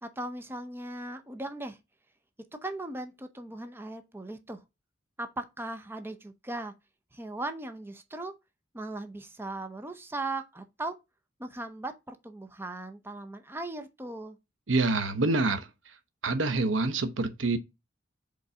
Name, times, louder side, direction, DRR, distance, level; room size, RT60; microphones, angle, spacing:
voice 1, 0.0-1.8 2.6-4.6 5.2-6.7 7.1-8.3 8.7-11.0 11.4-14.4, right 2 dB, 10° right, 0.7 m, -38 dB
voice 2, 14.7-15.7 16.2-17.6, right 3 dB, 85° right, 0.9 m, -26 dB
5.2 x 3.9 x 4.8 m
head